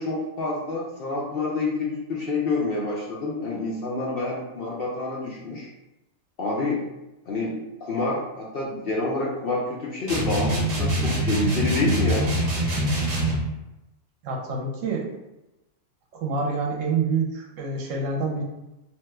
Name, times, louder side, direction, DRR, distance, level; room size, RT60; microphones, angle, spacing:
voice 1, 0.0-5.7 6.4-6.8 7.3-12.3, left 3 dB, 65° left, -4 dB, 0.6 m, -28 dB
sound 1, 10.1-13.5, right 1 dB, 50° right, 1.0 m, -24 dB
voice 2, 14.2-15.1 16.1-18.4, right 4 dB, 75° right, 0 dB, 1.0 m, -27 dB
2.9 x 2.2 x 3.2 m, 0.97 s
omnidirectional pair, 1.4 m